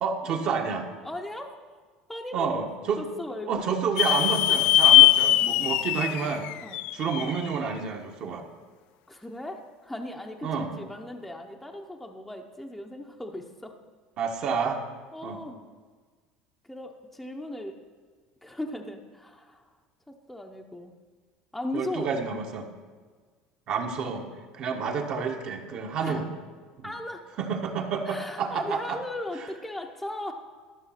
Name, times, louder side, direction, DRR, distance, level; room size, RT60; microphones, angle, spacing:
voice 1, 0.0-0.9 2.3-3.0 3.5-6.5 6.9-8.4 10.4-10.7 14.2-14.8 15.2-15.4 21.7-22.7 23.7-24.3 24.5-26.3 26.8-26.9 27.4-29.0, right 5 dB, 50° right, 3 dB, 1.4 m, -29 dB
voice 2, 1.0-1.5 2.1-2.6 3.0-3.6 6.6-6.8 9.1-13.7 15.1-15.6 16.6-17.8 18.4-19.7 20.1-20.9 21.5-22.2 26.0-26.2 26.8-27.2 28.1-30.3, left 1 dB, 5° left, 2 dB, 0.8 m, -37 dB
sound 1, 4.0-7.5, left 14 dB, 65° left, 0.4 m, -20 dB
13.0 x 6.1 x 5.8 m, 1.5 s
supercardioid pair, 120°, 2 cm